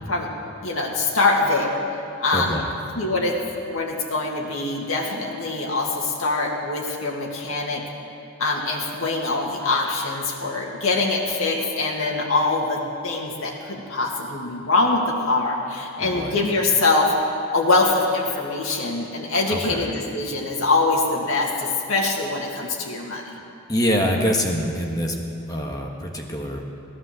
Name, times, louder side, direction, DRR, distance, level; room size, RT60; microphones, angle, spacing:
voice 1, 0.6-1.8 2.2-2.5 3.0-3.3 3.7-7.8 8.4-17.1 17.5-23.4, left 3 dB, 70° left, -2 dB, 2.3 m, -23 dB
voice 2, 2.3-2.7 4.7-4.8 16.0-16.4 19.5-19.9 23.7-25.1 25.4-26.6, equal, 20° left, 0 dB, 1.5 m, -25 dB
16.5 x 11.0 x 7.6 m, 2.6 s
head